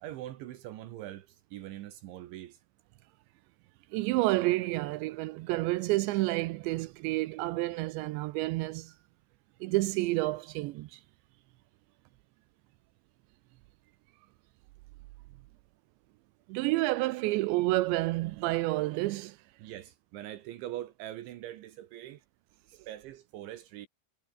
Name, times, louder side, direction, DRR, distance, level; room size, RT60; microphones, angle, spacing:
voice 1, 0.0-2.6 19.6-22.2 22.7-23.9, right 13 dB, 70° right, 3.4 m, -43 dB
voice 2, 3.9-8.9 9.6-11.0 16.5-19.4, right 19 dB, 90° right, 2.6 m, -29 dB
omnidirectional pair, 5.9 m